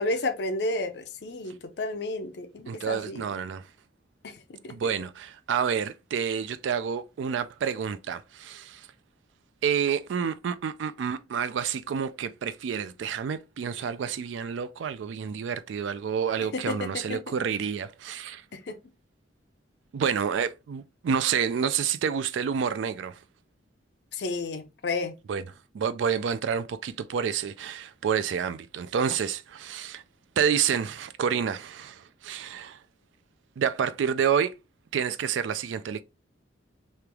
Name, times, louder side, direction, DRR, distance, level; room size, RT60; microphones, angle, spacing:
voice 1, 0.0-3.2 4.2-4.8 16.5-17.3 18.5-18.8 24.1-25.1, left 2 dB, 60° left, 0.5 m, -32 dB
voice 2, 2.7-3.6 4.7-8.9 9.6-18.4 19.9-23.2 25.3-25.4 25.7-30.0 30.4-32.8 33.6-34.5 34.9-36.0, right 7 dB, 80° right, 0.3 m, -29 dB
3.2 x 2.9 x 3.4 m
head